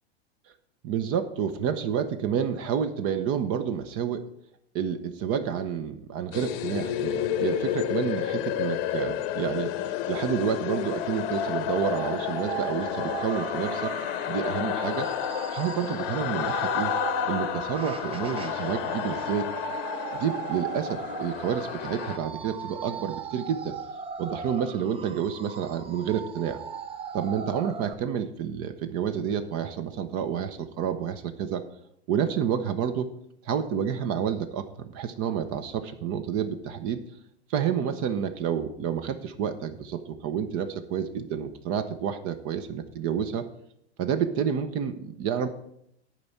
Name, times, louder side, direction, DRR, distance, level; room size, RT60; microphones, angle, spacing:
voice 1, 0.8-4.2 4.7-9.7 10.1-13.9 14.3-15.1 15.5-16.9 17.2-19.5 20.1-23.7 24.2-26.6 27.1-31.6 32.1-33.1 33.4-37.0 37.5-43.4 44.0-45.5, right 8 dB, 45° right, 9 dB, 0.9 m, -29 dB
sound 1, 6.3-22.2, left 11 dB, 55° left, 1.0 m, -31 dB
sound 2, 11.8-27.9, right 6 dB, 15° right, 0.6 m, -37 dB
10.5 x 4.4 x 8.0 m, 0.75 s
hypercardioid pair, 115°, 34 cm